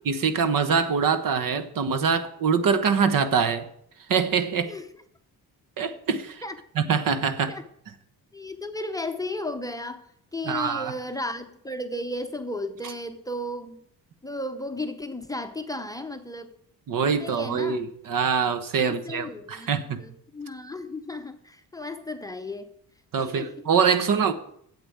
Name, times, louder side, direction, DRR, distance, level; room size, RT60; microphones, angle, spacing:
voice 1, 0.1-3.6 4.1-4.7 5.8-6.4 6.8-7.5 10.4-10.9 16.9-20.0 23.1-24.3, right 6 dB, 60° right, 1.2 m, -24 dB
voice 2, 8.3-10.0 10.3-13.8 14.2-16.5 17.2-17.8 18.8-19.7 20.0-22.7 23.2-23.5, left 1 dB, 10° left, 0.8 m, -34 dB
9.0 x 8.0 x 8.7 m
cardioid pair, 140°, 37 cm